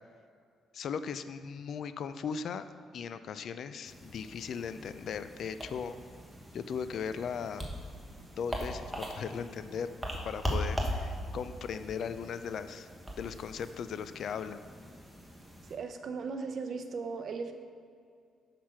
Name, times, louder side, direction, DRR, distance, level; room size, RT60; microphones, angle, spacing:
voice 1, 0.7-2.6 2.9-6.0 6.5-7.7 8.4-9.9 10.2-12.9 13.2-14.6, left 6 dB, 65° left, 12 dB, 0.4 m, -38 dB
sound 1, 3.8-15.8, equal, 5° right, 1.3 m, -40 dB
voice 2, 15.7-17.5, right 4 dB, 55° right, 6 dB, 0.7 m, -37 dB
6.6 x 5.8 x 5.7 m, 2.3 s
cardioid pair, 90°, 0 cm